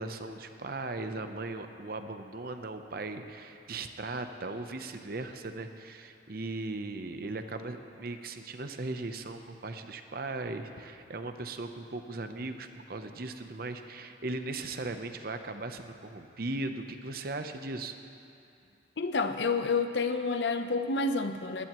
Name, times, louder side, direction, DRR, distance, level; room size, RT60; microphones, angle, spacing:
voice 1, 0.0-17.9, right 2 dB, 55° right, 7 dB, 0.8 m, -38 dB
voice 2, 19.0-21.6, left 4 dB, 75° left, 8 dB, 0.8 m, -29 dB
20.5 x 15.5 x 3.1 m, 2.6 s
head